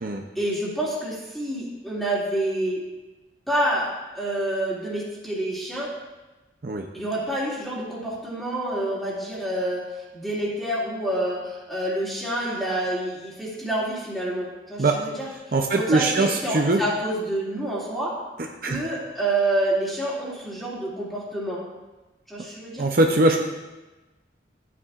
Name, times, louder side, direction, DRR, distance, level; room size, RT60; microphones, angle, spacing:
voice 1, 0.3-2.8 3.5-3.9 4.1-5.9 6.9-9.9 10.1-15.3 15.7-18.2 18.6-21.6 22.3-22.9, right 1 dB, ahead, -7 dB, 2.4 m, -28 dB
voice 2, 15.5-16.8 18.6-18.8 22.8-23.4, right 2 dB, 55° right, 3 dB, 0.6 m, -21 dB
12.0 x 8.5 x 2.5 m, 1.1 s
head